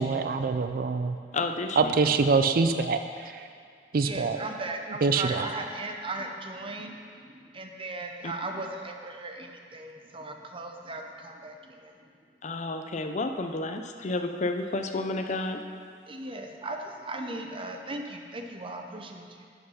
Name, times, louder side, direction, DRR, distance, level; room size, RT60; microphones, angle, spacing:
voice 1, 0.0-1.2 1.8-3.5 3.9-4.4 4.9-5.5, right 4 dB, 55° right, 8 dB, 0.4 m, -25 dB
voice 2, 1.3-1.9 8.2-8.3 12.4-15.6, left 2 dB, 40° left, 6 dB, 0.5 m, -31 dB
voice 3, 4.0-7.0 7.2-11.9 16.1-19.5, right 2 dB, 30° right, 4 dB, 0.8 m, -37 dB
11.0 x 5.5 x 5.6 m, 2.2 s
head